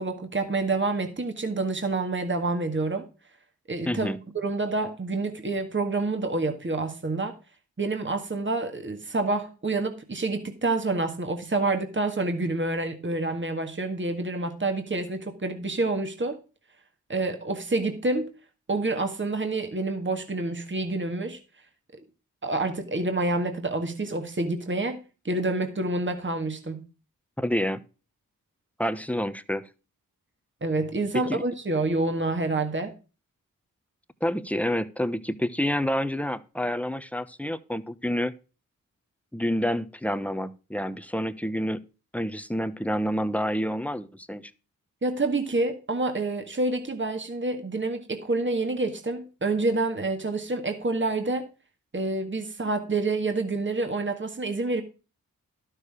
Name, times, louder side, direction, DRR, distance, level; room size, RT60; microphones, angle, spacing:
voice 1, 0.0-3.1 3.7-4.1 4.4-7.3 7.8-16.4 17.1-18.3 18.7-21.4 22.4-26.8 30.6-32.9 45.0-51.5 51.9-54.8, right 2 dB, 35° right, 1.8 m, -28 dB
voice 2, 3.8-4.2 27.4-27.8 28.8-29.7 31.3-31.4 34.2-38.3 39.3-41.8 42.1-44.5, equal, 5° left, 0.9 m, -28 dB
12.0 x 6.6 x 4.9 m
cardioid pair, 50°, 34 cm